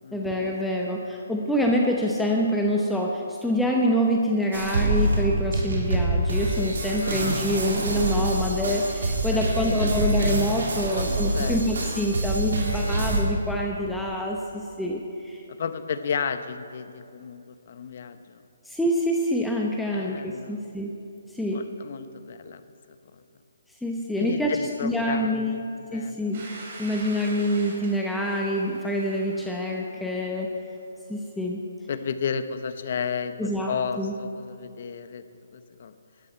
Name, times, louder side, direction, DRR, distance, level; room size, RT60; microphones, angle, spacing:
voice 1, 0.1-15.4 18.6-21.0 21.3-21.7 23.8-26.5 26.8-30.5 31.1-31.6 33.4-34.1, equal, 5° left, -1 dB, 0.8 m, -26 dB
sound 1, 4.5-13.2, right 2 dB, 75° right, 3.1 m, -26 dB
voice 2, 6.9-7.6 9.3-10.1 10.5-11.8 15.5-18.4 19.9-20.6 21.5-22.6 23.1-23.2 24.2-25.6 25.9-26.2 31.9-35.2 35.5-36.0, left 6 dB, 55° left, 10 dB, 0.9 m, -33 dB
Domestic sounds home sounds, 26.3-31.0, right 2 dB, 45° right, 3.7 m, -44 dB
16.5 x 12.0 x 4.5 m, 2.7 s
hypercardioid pair, 155°, 0 cm